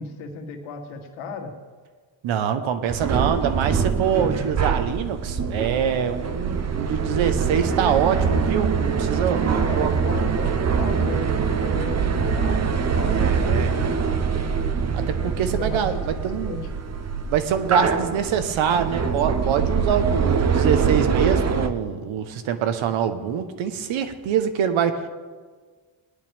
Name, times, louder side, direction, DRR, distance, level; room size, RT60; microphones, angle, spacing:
voice 1, 0.0-1.5 9.6-14.0 15.2-16.0 16.4-16.6, left 4 dB, 85° left, 2 dB, 1.9 m, -35 dB
voice 2, 2.2-9.9 13.1-13.7 14.9-16.6 17.3-25.1, right 8 dB, 80° right, 9 dB, 1.2 m, -24 dB
sound 1, 2.9-21.7, right 6 dB, 35° right, 0.8 m, -24 dB
19.5 x 11.0 x 3.6 m, 1.5 s
cardioid pair, 90°, 46 cm